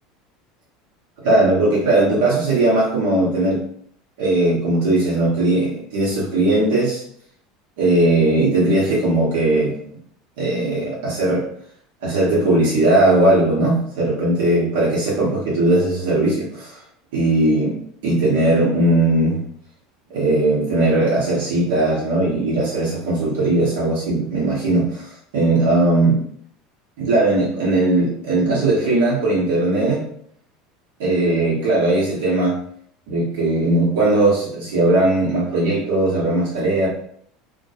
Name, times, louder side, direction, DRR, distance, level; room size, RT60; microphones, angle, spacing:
voice 1, 1.2-3.6 4.2-7.0 7.8-9.7 10.4-11.4 12.0-16.8 17.1-17.8 18.0-19.4 20.1-26.2 27.0-30.0 31.0-32.6 33.1-36.9, right 2 dB, 65° right, -6 dB, 0.9 m, -18 dB
2.1 x 2.1 x 2.8 m, 0.63 s
figure-of-eight pair, 75°, 0 cm